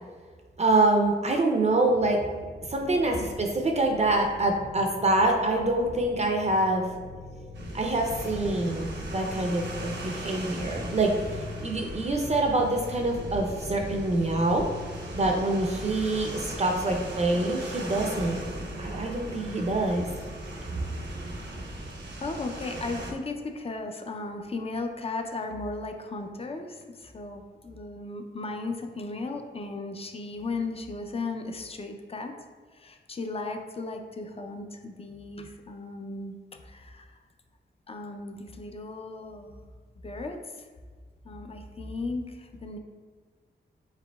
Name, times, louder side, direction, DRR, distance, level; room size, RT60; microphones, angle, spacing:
voice 1, 0.6-2.2 2.7-6.8 7.7-14.6 15.1-18.5 18.8-20.1, right 2 dB, 40° right, 2 dB, 0.5 m, -25 dB
sound 1, 1.9-21.6, left 3 dB, 65° left, 0.8 m, -45 dB
sound 2, 7.5-23.1, right 1 dB, 80° right, 0.8 m, -38 dB
voice 2, 22.2-32.3 32.7-36.3 36.6-37.1 37.9-39.6 40.0-40.4 41.2-42.8, left 3 dB, 30° left, 4 dB, 0.4 m, -36 dB
4.8 x 3.8 x 2.3 m, 1.6 s
wide cardioid pair, 90°, 18 cm